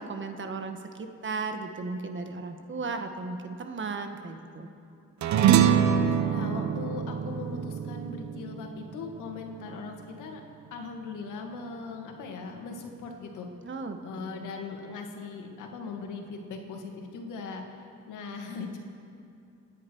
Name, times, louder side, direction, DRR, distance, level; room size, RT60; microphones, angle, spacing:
voice 1, 0.0-4.7 13.6-14.5, right 4 dB, 40° right, 6 dB, 1.4 m, -36 dB
sound 1, 5.2-9.9, right 9 dB, 70° right, 0.9 m, -25 dB
voice 2, 6.3-10.4 10.7-13.5 14.0-17.8 18.1-18.8, left 4 dB, 85° left, 2 dB, 2.0 m, -39 dB
28.5 x 10.0 x 4.6 m, 2.5 s
cardioid pair, 90°, 30 cm